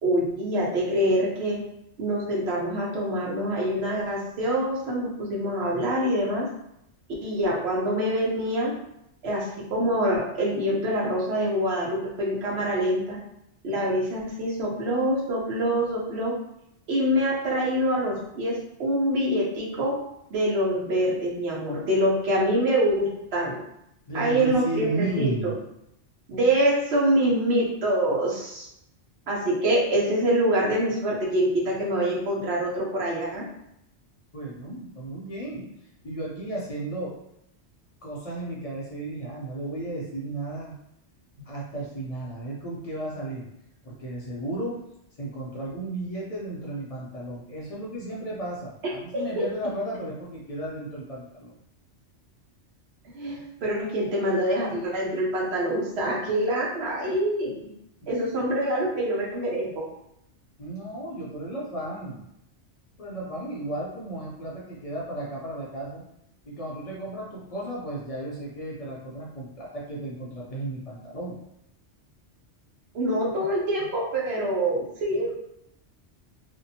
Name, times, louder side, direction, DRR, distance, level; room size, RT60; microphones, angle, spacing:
voice 1, 0.0-1.6 2.0-6.5 7.2-8.7 9.2-13.2 13.6-16.3 16.9-19.9 20.3-23.6 24.1-25.5 26.3-28.7 29.3-33.4 49.1-49.5 53.1-57.6 58.1-59.8 72.9-75.3, right 1 dB, 65° right, -3 dB, 1.0 m, -25 dB
voice 2, 24.1-25.5 34.3-35.7 36.0-37.2 38.0-40.8 41.5-43.5 43.8-44.8 45.2-51.5 58.0-58.1 60.6-62.3 63.0-66.0 66.5-71.4, right 2 dB, 50° left, -5 dB, 0.4 m, -34 dB
2.6 x 2.1 x 2.7 m, 0.80 s
omnidirectional pair, 1.2 m